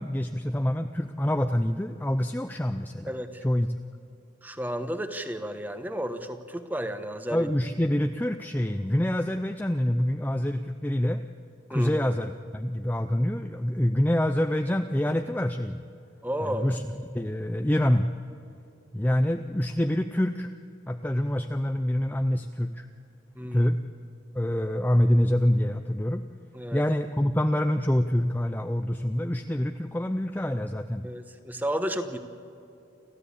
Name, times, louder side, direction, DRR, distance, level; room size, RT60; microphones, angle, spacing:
voice 1, 0.0-3.1 3.4-3.7 7.3-11.2 11.7-15.8 16.4-16.8 17.1-18.1 18.9-20.5 20.9-22.9 23.5-23.8 24.3-26.2 26.7-31.1, left 1 dB, 10° left, 7 dB, 0.5 m, -26 dB
voice 2, 3.1-3.4 4.4-7.5 11.7-12.0 16.2-16.8 23.3-23.7 26.5-26.8 31.0-32.2, equal, 10° right, 8 dB, 1.1 m, -32 dB
30.0 x 13.5 x 8.5 m, 2.7 s
head